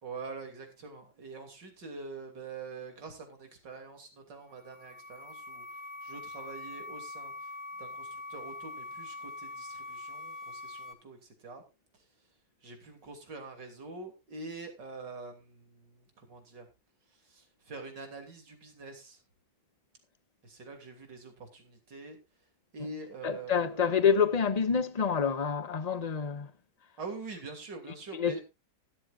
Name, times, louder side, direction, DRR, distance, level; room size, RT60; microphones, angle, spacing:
voice 1, 0.0-5.7 6.0-7.5 7.8-11.6 11.9-12.1 12.6-16.7 17.1-19.2 20.4-22.2 22.7-23.9 27.0-28.4, right 3 dB, 85° right, 3.6 m, -45 dB
sound 1, 4.4-10.9, left 2 dB, 45° right, 3.1 m, -43 dB
voice 2, 23.2-26.5 28.1-28.4, left 6 dB, 30° left, 0.8 m, -27 dB
16.0 x 12.0 x 2.5 m
omnidirectional pair, 1.9 m